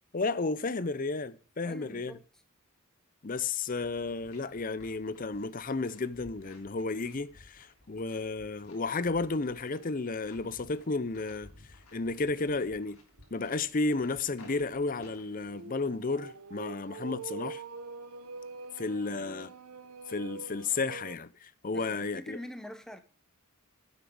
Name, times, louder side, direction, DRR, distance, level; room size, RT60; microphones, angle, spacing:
voice 1, 0.1-2.2 3.2-11.5 11.9-13.0 13.3-17.6 18.8-19.5 20.1-22.4, left 3 dB, 40° left, 0.6 m, -33 dB
voice 2, 1.6-2.2 21.7-23.0, equal, ahead, 1.0 m, -45 dB
sound 1, 3.4-15.5, left 2 dB, 80° left, 3.2 m, -58 dB
sound 2, 9.7-10.1 10.5-10.6 11.0-11.1 13.2-21.2, right 4 dB, 85° right, 0.9 m, -45 dB
9.4 x 7.5 x 7.0 m
head